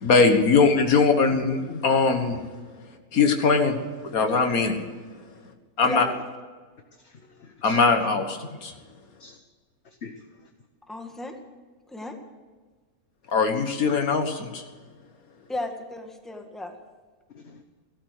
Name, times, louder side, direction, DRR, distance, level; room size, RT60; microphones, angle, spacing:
voice 1, 0.0-2.4 3.1-4.8 5.8-6.0 7.6-8.7 13.3-14.6, left 4 dB, 75° left, 6 dB, 1.9 m, -21 dB
voice 2, 7.0-7.8 9.2-9.4 9.8-10.5 17.3-17.6, left 5 dB, 50° left, 6 dB, 1.2 m, -43 dB
voice 3, 10.9-11.3 11.9-12.1 15.5-16.7, left 2 dB, ahead, 4 dB, 1.5 m, -34 dB
16.5 x 13.0 x 6.6 m, 1.4 s
omnidirectional pair, 1.5 m